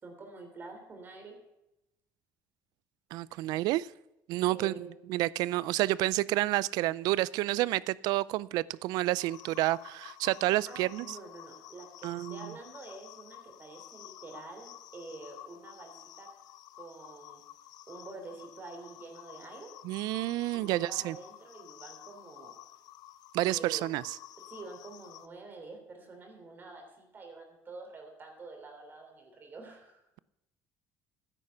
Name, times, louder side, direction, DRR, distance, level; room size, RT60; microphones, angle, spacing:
voice 1, 0.0-1.3 3.3-3.5 4.5-4.9 10.7-16.3 16.7-17.4 17.9-19.7 20.5-22.5 23.5-23.8 24.5-30.0, right 3 dB, 30° right, 3 dB, 3.2 m, -47 dB
voice 2, 3.1-3.9 4.3-11.2 12.0-12.5 19.8-21.1 23.3-24.2, right 17 dB, 75° right, 21 dB, 0.3 m, -30 dB
sound 1, 9.2-25.3, left 13 dB, 70° left, 0.6 m, -51 dB
12.5 x 9.9 x 5.6 m, 0.90 s
cardioid pair, 130°, 7 cm